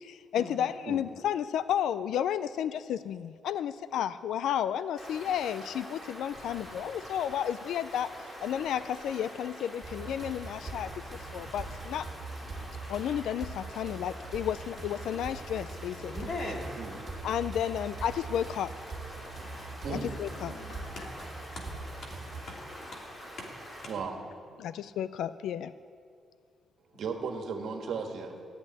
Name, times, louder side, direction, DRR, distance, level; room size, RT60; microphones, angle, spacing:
voice 1, 0.0-8.1 8.4-10.9 11.3-12.1 12.9-16.1 17.2-18.7 19.9-20.5 24.6-25.7, left 9 dB, 80° left, 14 dB, 0.3 m, -32 dB
Stream, 5.0-23.9, equal, 20° left, 3.0 m, -45 dB
sound 1, 9.8-22.5, right 3 dB, 25° right, 2.1 m, -43 dB
voice 2, 15.9-16.7 19.9-21.6 22.0-22.1 22.5-22.6 22.9-23.0 23.4-23.5 26.9-27.0, left 2 dB, 50° left, -1 dB, 2.6 m, -41 dB
voice 3, 23.9-24.6 26.9-28.3, right 5 dB, 55° right, 3 dB, 1.7 m, -36 dB
14.0 x 8.1 x 9.8 m, 2.3 s
cardioid pair, 180°, 0 cm